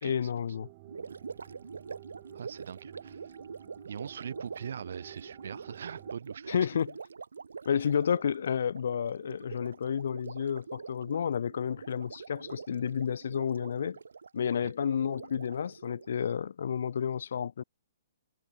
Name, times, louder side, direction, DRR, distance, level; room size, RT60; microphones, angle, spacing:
voice 1, 0.0-0.7 6.5-6.9 7.6-14.0 14.3-17.6, left 7 dB, 70° left, 0.6 m, -31 dB
sound 1, 0.5-6.1, right 24 dB, 35° right, 1.4 m, -53 dB
Gurgling, 0.8-16.1, right 5 dB, 90° right, 1.9 m, -45 dB
voice 2, 2.3-3.2 3.8-6.6 14.6-14.7, right 7 dB, 70° right, 0.6 m, -41 dB
hypercardioid pair, 145°, 0 cm